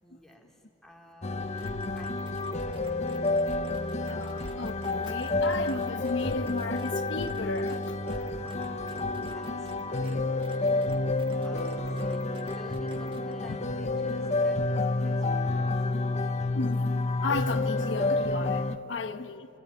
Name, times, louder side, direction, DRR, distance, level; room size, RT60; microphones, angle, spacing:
voice 1, 0.0-3.1 8.4-10.2 10.6-16.4 19.0-19.3, equal, ahead, 3.2 m, -53 dB
sound 1, 1.2-18.8, left 2 dB, 35° left, 0.8 m, -29 dB
sound 2, 1.6-10.2 10.4-13.3, right 3 dB, 25° right, 1.8 m, -52 dB
voice 2, 4.1-8.0 16.5-16.9 17.2-19.5, left 3 dB, 85° left, 1.1 m, -34 dB
29.0 x 18.5 x 9.8 m
head